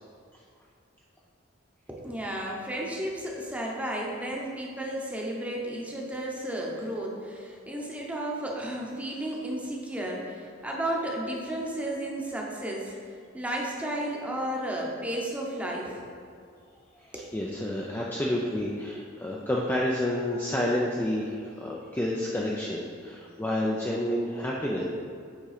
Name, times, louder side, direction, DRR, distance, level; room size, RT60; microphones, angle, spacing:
voice 1, 1.9-16.0 17.1-17.3, right 1 dB, 5° right, -2 dB, 0.9 m, -33 dB
voice 2, 16.9-24.8, left 1 dB, 10° left, -3 dB, 0.4 m, -29 dB
8.1 x 3.7 x 5.0 m, 2.3 s
head